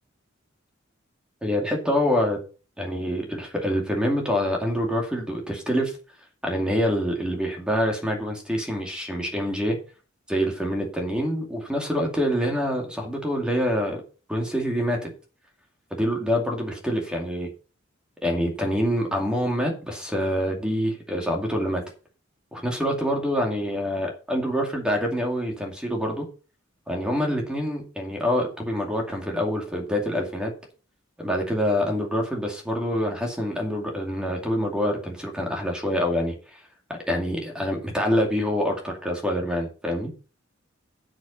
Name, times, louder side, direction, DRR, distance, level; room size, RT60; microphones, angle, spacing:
voice 1, 1.4-2.4 2.8-6.0 6.4-9.8 10.3-14.0 14.3-15.1 15.9-17.5 18.2-21.8 22.5-26.3 26.9-30.5 31.2-36.6 36.9-40.1, equal, 5° right, 1 dB, 2.3 m, -26 dB
8.3 x 7.8 x 5.5 m, 0.36 s
head